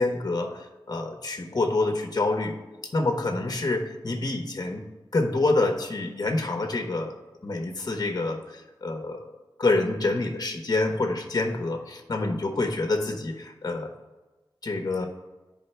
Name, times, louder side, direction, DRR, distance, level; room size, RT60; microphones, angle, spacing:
voice 1, 0.0-2.5 2.9-4.8 5.1-7.2 7.4-9.2 9.6-13.9 14.6-15.1, left 2 dB, 50° left, 4 dB, 1.1 m, -27 dB
13.0 x 5.2 x 3.3 m, 1.2 s
wide cardioid pair, 70°, 9 cm